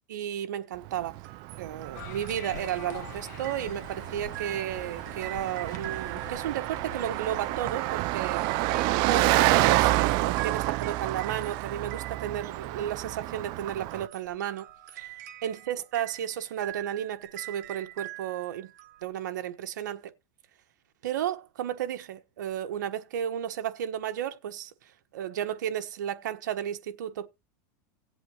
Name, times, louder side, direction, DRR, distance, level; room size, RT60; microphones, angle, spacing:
voice 1, 0.1-1.2 1.6-8.4 9.0-14.7 14.9-15.1 15.4-18.7 19.0-20.1 21.0-27.3, right 10 dB, 85° right, 1.3 m, -33 dB
Car passing by, 0.9-14.1, right 18 dB, 50° right, 0.5 m, -29 dB
sound 1, 1.2-13.2 13.8-19.1, right 17 dB, 70° right, 4.4 m, -45 dB
sound 2, 1.9-7.7, left 9 dB, 70° left, 1.6 m, -46 dB
17.5 x 7.9 x 3.0 m
supercardioid pair, 135°, 10 cm